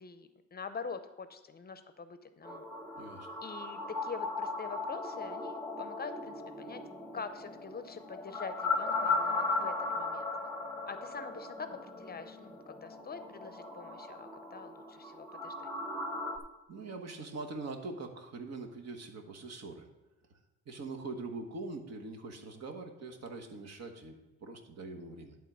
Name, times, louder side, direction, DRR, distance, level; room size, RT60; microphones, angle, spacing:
voice 1, 0.0-2.7 3.4-6.8 7.1-10.3 10.9-11.7 12.0-15.7, left 5 dB, 30° left, 10 dB, 0.6 m, -45 dB
sound 1, 2.4-16.4, left 3 dB, 5° left, 0.9 m, -37 dB
voice 2, 3.0-3.3 16.7-19.9 20.7-25.4, right 3 dB, 60° right, 4 dB, 1.3 m, -43 dB
11.0 x 3.7 x 6.0 m, 1.1 s
cardioid pair, 90°, 30 cm